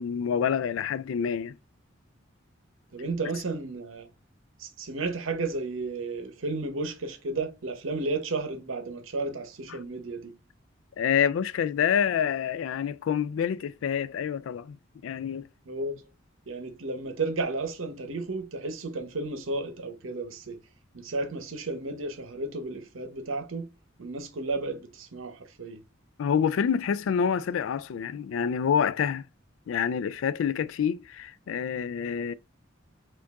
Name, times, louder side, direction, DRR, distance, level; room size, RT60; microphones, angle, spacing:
voice 1, 0.0-1.6 11.0-14.8 15.0-15.5 26.2-29.3 29.7-32.3, left 7 dB, 75° left, 0.3 m, -27 dB
voice 2, 2.9-4.1 4.6-10.3 15.7-16.0 16.5-20.6 20.9-23.7 24.0-25.8, right 3 dB, 80° right, 0.9 m, -33 dB
4.5 x 2.5 x 3.5 m
head